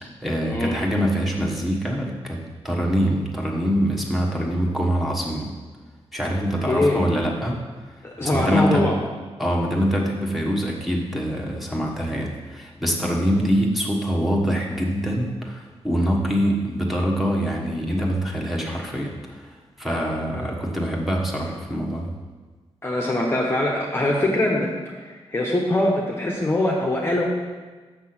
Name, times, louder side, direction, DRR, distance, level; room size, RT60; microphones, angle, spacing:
voice 1, 0.0-5.5 6.1-7.6 8.2-8.9 9.4-22.1, equal, ahead, -3 dB, 1.3 m, -24 dB
voice 2, 6.4-7.0 8.0-8.9 19.9-20.6 22.8-27.2, left 1 dB, 20° left, -2 dB, 0.9 m, -23 dB
6.7 x 6.0 x 6.0 m, 1.4 s
wide cardioid pair, 125°, 11 cm